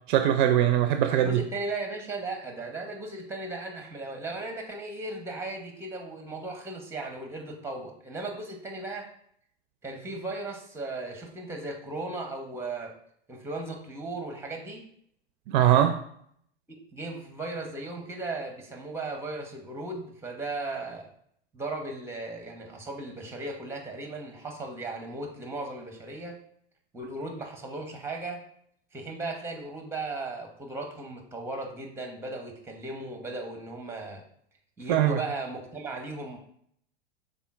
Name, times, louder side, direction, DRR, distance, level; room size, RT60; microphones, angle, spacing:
voice 1, 0.1-1.3 15.5-16.0 34.9-35.2, right 11 dB, 50° right, 7 dB, 0.4 m, -21 dB
voice 2, 1.2-9.1 9.8-12.9 13.3-14.9 16.9-21.1 21.5-26.4 26.9-28.4 28.9-34.2 34.8-36.4, right 2 dB, 10° right, 4 dB, 0.9 m, -36 dB
5.5 x 3.9 x 2.5 m, 0.67 s
hypercardioid pair, 95°, 33 cm